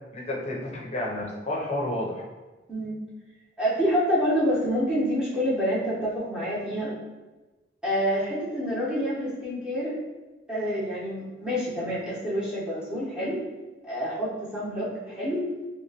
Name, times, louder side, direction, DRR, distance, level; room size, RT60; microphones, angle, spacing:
voice 1, 0.1-2.3, left 1 dB, 35° left, -2 dB, 0.6 m, -31 dB
voice 2, 3.6-6.9 7.8-10.0 10.5-13.4 13.8-15.5, equal, 5° right, -9 dB, 1.0 m, -27 dB
3.1 x 3.0 x 2.8 m, 1.2 s
head